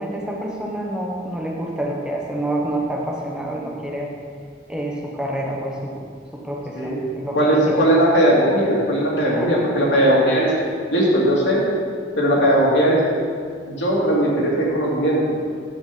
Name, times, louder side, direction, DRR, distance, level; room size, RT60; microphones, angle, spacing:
voice 1, 0.0-4.1 4.7-6.0 6.3-7.9 9.3-9.9, right 1 dB, 5° right, -2 dB, 0.9 m, -27 dB
voice 2, 7.3-10.5 10.9-11.7 12.2-13.0 13.7-15.2, right 1 dB, 75° left, -5 dB, 2.6 m, -18 dB
9.7 x 7.8 x 5.3 m, 2.2 s
head